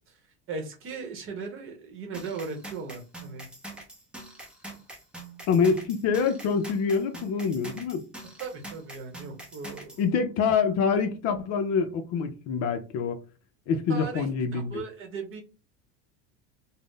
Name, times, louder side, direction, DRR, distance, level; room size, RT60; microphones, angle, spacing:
voice 1, 0.5-3.5 8.4-9.9 13.9-15.4, right 4 dB, 40° right, 0.8 m, -37 dB
sound 1, 2.1-10.0, right 2 dB, 5° right, 0.6 m, -44 dB
voice 2, 5.5-8.0 10.0-13.2 13.7-14.8, left 5 dB, 50° left, 0.5 m, -26 dB
2.5 x 2.0 x 3.6 m
supercardioid pair, 125°, 34 cm